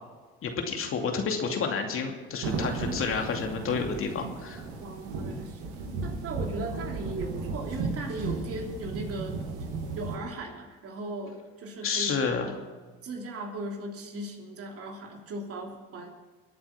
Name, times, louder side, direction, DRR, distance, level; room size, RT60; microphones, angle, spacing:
voice 1, 0.4-4.6 11.8-12.5, left 5 dB, 50° left, 3 dB, 2.6 m, -30 dB
sound 1, 2.4-10.2, right 3 dB, 75° right, 2.6 m, -35 dB
voice 2, 4.8-9.4 9.9-12.6 13.0-16.1, right 2 dB, 50° right, 2 dB, 3.1 m, -38 dB
23.5 x 8.7 x 5.9 m, 1.4 s
hypercardioid pair, 70°, 29 cm